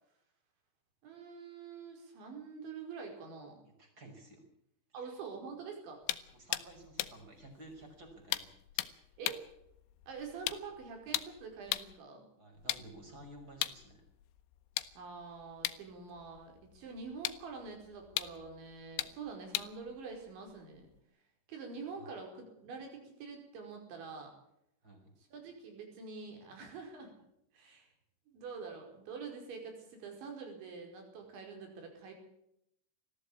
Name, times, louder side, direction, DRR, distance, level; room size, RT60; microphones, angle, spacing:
voice 1, 1.0-3.6 4.9-6.2 9.2-9.4 10.1-12.2 15.0-20.9 21.5-24.3 25.3-27.1 27.5-27.9 28.3-32.2, right 5 dB, 70° right, 3 dB, 7.2 m, -46 dB
voice 2, 3.8-4.4 4.9-5.1 6.3-9.2 12.4-14.0 22.0-22.1 24.8-25.1, right 1 dB, 20° right, 3 dB, 6.0 m, -54 dB
sound 1, 6.0-12.0 12.5-21.0, left 16 dB, 80° left, 3.3 m, -41 dB
20.5 x 15.0 x 8.7 m, 0.76 s
omnidirectional pair, 5.5 m